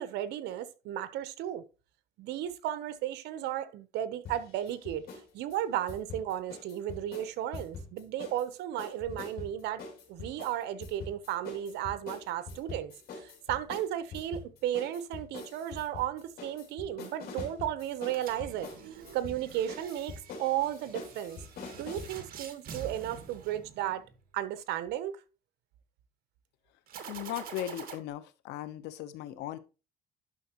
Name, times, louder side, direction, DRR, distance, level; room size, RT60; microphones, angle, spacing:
voice 1, 0.0-1.6 2.2-5.0 5.3-9.8 10.1-18.7 19.1-20.1 20.4-21.4 21.7-24.0 24.3-25.2, right 11 dB, 85° right, 0.9 m, -34 dB
sound 1, 4.3-5.3 5.5-8.5 8.8-22.2, left 4 dB, 65° left, 4.0 m, -44 dB
sound 2, 18.0-24.2 26.9-28.0, right 7 dB, 60° right, 2.0 m, -47 dB
voice 2, 27.1-29.6, left 12 dB, 85° left, 0.9 m, -38 dB
11.0 x 5.9 x 3.0 m
cardioid pair, 110°, 17 cm